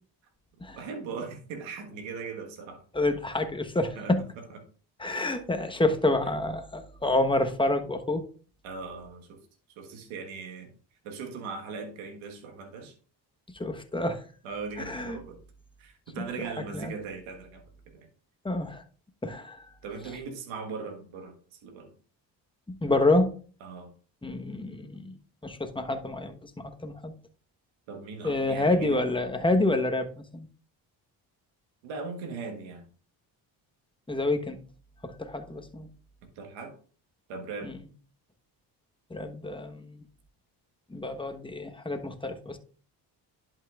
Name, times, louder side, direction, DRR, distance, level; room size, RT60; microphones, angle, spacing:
voice 1, 0.7-2.8 3.9-4.6 6.2-6.3 8.6-9.4 9.7-10.7 11.0-12.9 14.4-15.4 15.8-17.6 17.9-18.1 19.8-21.9 23.6-23.9 27.9-29.0 31.8-32.8 36.3-36.7 37.3-37.7, right 4 dB, 85° right, 1.6 m, -39 dB
voice 2, 2.9-4.2 5.0-8.2 13.5-14.2 14.8-15.2 16.7-16.9 18.4-18.8 19.2-19.6 22.7-23.3 24.2-25.1 25.4-27.1 28.2-30.5 34.1-34.6 35.0-35.9 37.6-37.7 39.1-40.0 40.9-42.6, left 2 dB, 10° left, 1.1 m, -28 dB
11.0 x 5.6 x 2.4 m
supercardioid pair, 65°, 46 cm